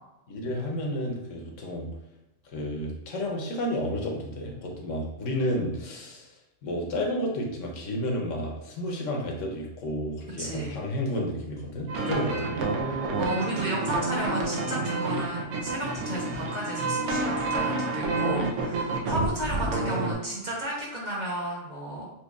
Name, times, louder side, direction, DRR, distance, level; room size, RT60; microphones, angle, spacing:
voice 1, 0.3-1.9 2.4-6.3 6.6-12.8 19.1-19.3, equal, 75° left, 0 dB, 1.1 m, -31 dB
voice 2, 10.4-10.8 12.1-12.3 13.1-22.1, right 1 dB, 40° right, -5 dB, 0.9 m, -33 dB
sound 1, 11.9-20.1, right 3 dB, 75° right, 0.9 m, -29 dB
4.5 x 2.5 x 2.3 m, 0.94 s
omnidirectional pair, 1.3 m